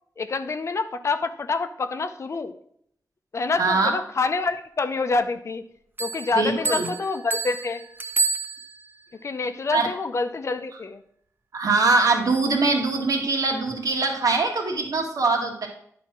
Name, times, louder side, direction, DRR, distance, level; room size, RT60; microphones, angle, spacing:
voice 1, 0.2-2.5 3.3-5.6 6.0-7.8 9.2-11.0, left 4 dB, 50° left, 9 dB, 0.6 m, -27 dB
voice 2, 3.6-3.9 6.3-6.9 9.7-9.9 11.5-15.7, right 3 dB, 70° right, 2 dB, 1.6 m, -22 dB
Bell, 6.0-9.1, right 4 dB, 35° right, 0.7 m, -29 dB
10.0 x 4.2 x 5.8 m, 0.67 s
wide cardioid pair, 140°, 6 cm